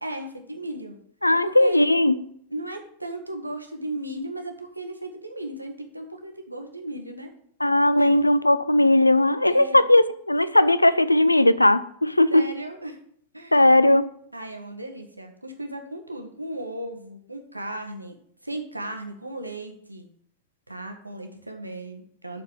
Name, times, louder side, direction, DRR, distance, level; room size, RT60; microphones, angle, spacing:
voice 1, 0.0-1.0 1.4-1.8 2.5-7.3 8.0-8.1 9.5-9.8 12.3-13.0 13.3-13.7 14.3-18.2 18.4-20.1 20.7-22.4, right 1 dB, 85° right, 1.0 m, -36 dB
voice 2, 1.2-2.2 7.6-12.4 13.5-14.1, left 1 dB, 85° left, 0.3 m, -18 dB
7.0 x 4.1 x 6.6 m
figure-of-eight pair, 90°, 0 cm